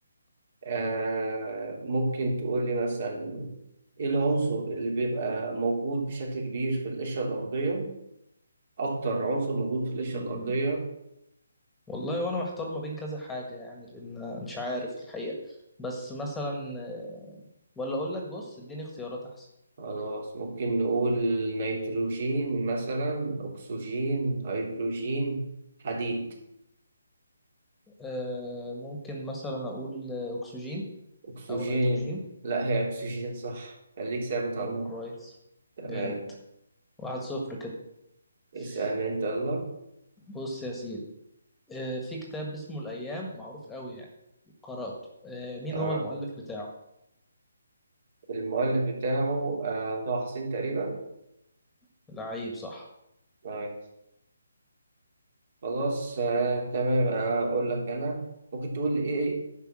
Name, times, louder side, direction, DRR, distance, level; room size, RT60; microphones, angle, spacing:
voice 1, 0.6-3.5 4.0-7.9 8.8-10.9 19.8-25.4 25.8-26.3 31.3-32.2 32.4-35.0 35.8-36.3 38.5-39.7 45.7-46.1 48.3-51.0 53.4-53.7 55.6-59.4, right 2 dB, 50° right, 1 dB, 3.2 m, -29 dB
voice 2, 10.1-10.5 11.9-17.4 17.8-19.5 28.0-30.9 31.5-32.2 34.6-35.3 35.8-36.1 37.0-37.7 38.6-38.8 40.3-41.0 41.7-44.0 44.6-44.9 45.2-46.7 52.1-52.9, left 1 dB, 5° left, 0 dB, 1.7 m, -35 dB
10.5 x 5.7 x 7.6 m, 0.83 s
figure-of-eight pair, 150°, 0 cm